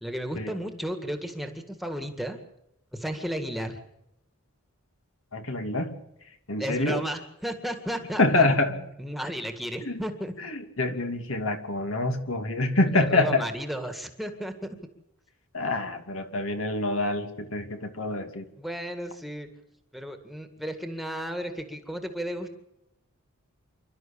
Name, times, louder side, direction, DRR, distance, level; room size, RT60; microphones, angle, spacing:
voice 1, 0.0-2.4 2.9-3.8 6.6-8.5 9.0-10.3 12.9-14.8 18.6-19.5 19.9-22.5, equal, ahead, 6 dB, 1.9 m, -34 dB
voice 2, 5.3-5.9 6.5-7.0 8.2-8.7 9.8-10.0 10.4-13.4 15.5-18.5, left 2 dB, 65° left, 6 dB, 2.7 m, -26 dB
27.5 x 12.5 x 8.6 m, 0.85 s
head